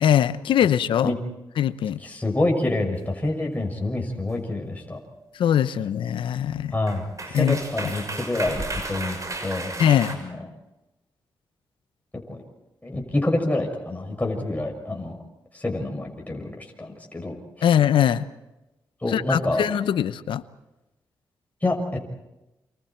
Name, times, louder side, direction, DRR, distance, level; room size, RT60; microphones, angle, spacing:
voice 1, 0.0-1.1 1.6-2.0 5.4-6.8 7.3-7.6 9.8-10.2 17.6-18.3 19.1-20.4, left 10 dB, 80° left, 15 dB, 0.8 m, -21 dB
voice 2, 2.0-5.0 6.7-7.1 7.3-9.7 10.1-10.4 12.3-12.4 12.8-15.2 15.5-17.7 19.0-19.6 21.6-21.8, left 2 dB, 20° left, 1 dB, 6.3 m, -27 dB
sound 1, 4.9-5.1 6.6-6.7 6.9-10.2, right 2 dB, 40° right, 6.2 m, -33 dB
28.5 x 27.5 x 4.5 m, 0.99 s
supercardioid pair, 50°, 8 cm